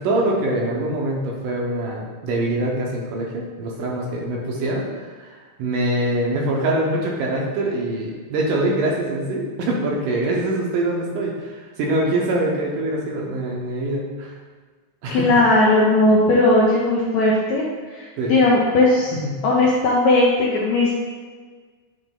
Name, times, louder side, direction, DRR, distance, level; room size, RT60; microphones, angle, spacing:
voice 1, 0.0-14.3 15.0-15.4 18.2-18.4 19.1-19.4, right 1 dB, 75° right, -2 dB, 2.3 m, -24 dB
voice 2, 15.1-17.6 17.9-19.1 19.4-21.0, left 2 dB, 75° left, -4 dB, 1.7 m, -17 dB
9.2 x 3.3 x 3.8 m, 1.5 s
omnidirectional pair, 4.0 m